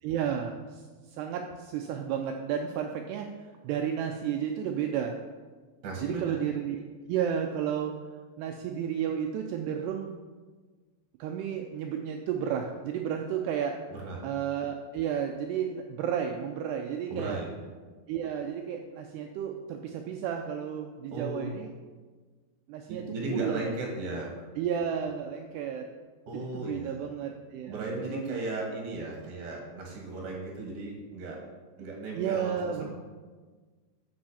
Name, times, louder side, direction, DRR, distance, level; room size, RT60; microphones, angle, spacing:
voice 1, 0.0-3.3 3.6-5.2 6.0-6.8 7.1-7.9 8.4-10.1 11.2-13.8 14.2-17.4 18.1-21.7 22.7-23.7 24.6-25.9 26.3-28.4 32.2-32.9, right 8 dB, 80° right, 4 dB, 2.5 m, -32 dB
voice 2, 5.8-6.4 13.9-14.2 17.1-17.5 21.1-21.5 22.9-24.4 26.3-27.0 27.7-31.4 31.8-32.9, right 2 dB, 60° right, -1 dB, 2.8 m, -36 dB
7.8 x 7.0 x 7.1 m, 1.4 s
omnidirectional pair, 5.2 m